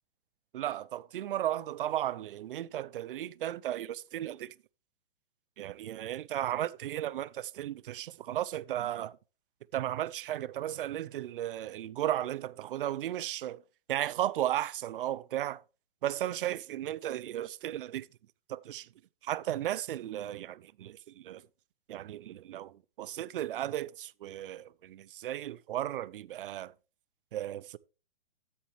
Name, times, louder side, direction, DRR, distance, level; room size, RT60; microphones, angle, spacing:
voice 1, 0.5-4.5 5.6-9.2 9.7-13.6 13.9-15.6 16.0-18.1 18.5-18.9 19.2-21.4 21.9-26.7 27.3-27.8, right 12 dB, 65° right, 0.6 m, -35 dB
13.0 x 7.4 x 3.2 m
hypercardioid pair, 150°, 29 cm